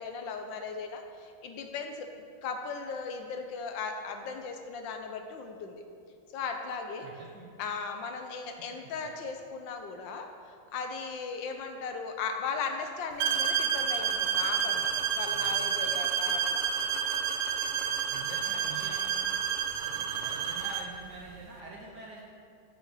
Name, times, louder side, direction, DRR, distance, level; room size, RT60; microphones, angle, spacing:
voice 1, 0.0-2.1 2.4-5.8 6.3-7.1 7.6-10.3 10.7-16.7, left 5 dB, 75° left, 5 dB, 1.4 m, -37 dB
voice 2, 7.0-7.5 8.7-8.9 18.1-19.4 19.8-22.2, right 3 dB, 60° right, -3 dB, 1.4 m, -46 dB
sound 1, 13.2-21.0, right 8 dB, 80° right, 0.8 m, -30 dB
6.5 x 6.1 x 6.9 m, 2.3 s
omnidirectional pair, 2.2 m